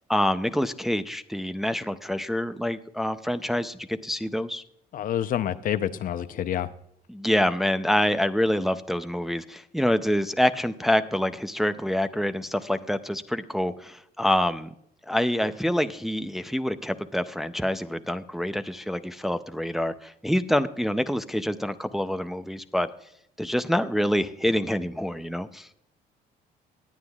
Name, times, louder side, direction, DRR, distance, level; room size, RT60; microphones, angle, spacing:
voice 1, 0.1-4.6 7.1-14.7 15.1-22.9 23.4-25.7, left 1 dB, ahead, 9 dB, 0.5 m, -26 dB
voice 2, 4.9-6.7, left 10 dB, 55° left, 12 dB, 0.6 m, -28 dB
19.5 x 9.0 x 2.3 m, 0.72 s
cardioid pair, 110°, 17 cm